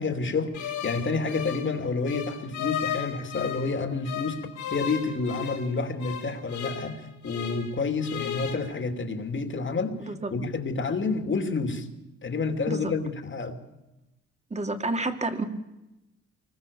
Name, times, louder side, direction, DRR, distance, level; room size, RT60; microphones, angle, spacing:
voice 1, 0.0-11.9 12.2-13.6, left 4 dB, 40° left, 7 dB, 2.8 m, -29 dB
sound 1, 0.5-3.7 4.0-7.7 8.0-8.5, left 9 dB, 80° left, 5.1 m, -35 dB
voice 2, 14.5-15.4, right 2 dB, 20° right, 7 dB, 2.4 m, -29 dB
24.5 x 21.5 x 7.0 m, 0.97 s
cardioid pair, 90°, 30 cm